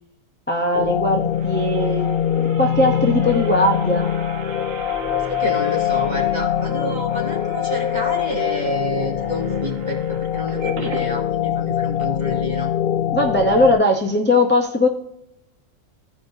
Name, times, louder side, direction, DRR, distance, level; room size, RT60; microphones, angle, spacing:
voice 1, 0.5-2.1 2.4-4.1 13.1-14.9, left 1 dB, 10° left, 0 dB, 0.5 m, -19 dB
sound 1, 0.7-13.8, left 10 dB, 60° left, 0.6 m, -23 dB
sound 2, 0.9-11.1 11.6-11.7 12.0-12.1, right 5 dB, 80° right, 1.3 m, -39 dB
voice 2, 5.3-12.7, left 1 dB, 30° right, -2 dB, 2.4 m, -28 dB
15.5 x 5.2 x 2.7 m, 0.85 s
omnidirectional pair, 1.4 m